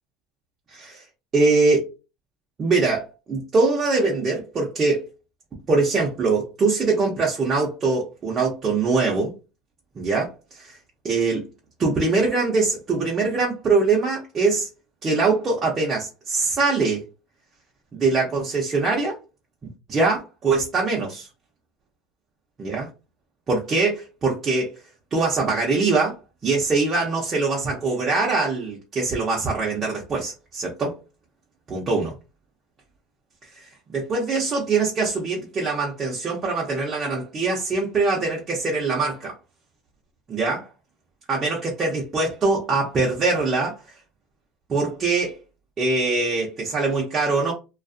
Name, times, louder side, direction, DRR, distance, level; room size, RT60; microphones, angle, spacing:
voice 1, 0.7-1.0 1.3-1.9 2.6-5.1 5.7-9.3 10.0-10.8 11.0-11.4 11.8-14.7 15.0-17.0 17.9-19.2 19.9-21.3 22.6-22.9 23.5-24.8 25.1-26.2 26.4-31.0 31.7-32.1 33.5-39.4 40.3-40.7 41.3-43.8 44.7-45.4 45.8-47.5, right 3 dB, 35° right, 0.7 m, -23 dB
2.4 x 2.4 x 2.4 m
supercardioid pair, 100°, 0 cm